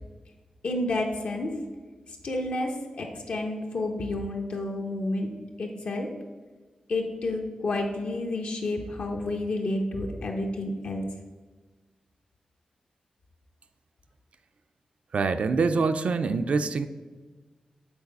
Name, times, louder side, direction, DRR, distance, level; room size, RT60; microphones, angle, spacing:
voice 1, 0.6-1.5 2.2-5.3 5.6-6.1 6.9-11.0, left 2 dB, 80° left, 0 dB, 0.8 m, -30 dB
voice 2, 15.1-16.9, right 4 dB, 70° right, 9 dB, 0.4 m, -25 dB
7.2 x 4.0 x 5.3 m, 1.3 s
wide cardioid pair, 105°, 2 cm